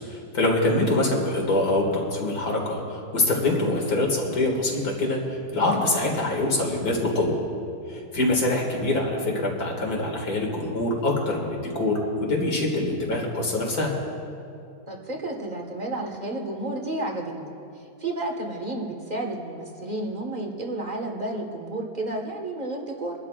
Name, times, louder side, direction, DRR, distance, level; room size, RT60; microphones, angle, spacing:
voice 1, 0.1-7.4 7.9-13.9, left 2 dB, 65° left, -1 dB, 2.7 m, -24 dB
voice 2, 6.9-7.2 14.9-23.1, right 2 dB, 25° right, 1 dB, 1.6 m, -32 dB
24.5 x 12.0 x 2.5 m, 2.6 s
omnidirectional pair, 1.7 m